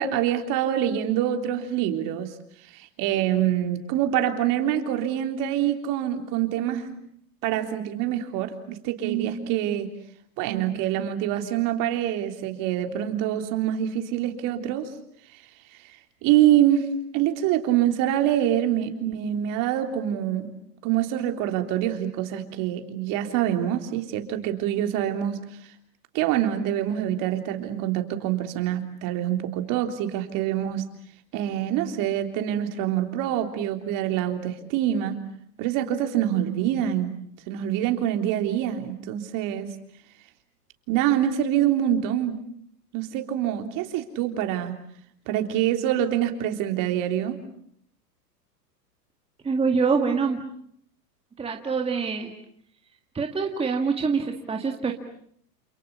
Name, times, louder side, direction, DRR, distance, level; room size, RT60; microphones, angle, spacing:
voice 1, 0.0-2.3 2.7-7.0 7.4-9.9 10.4-14.9 16.2-16.9 17.1-20.5 20.8-25.4 26.1-30.8 31.3-35.2 35.6-37.2 37.5-39.7 40.9-42.4 42.9-44.8 45.3-47.4, right 11 dB, 40° right, 6 dB, 3.6 m, -25 dB
voice 2, 49.4-50.4 51.4-52.3 53.1-54.9, right 5 dB, 10° right, 3 dB, 2.0 m, -25 dB
28.5 x 28.0 x 7.1 m, 0.67 s
hypercardioid pair, 125°, 49 cm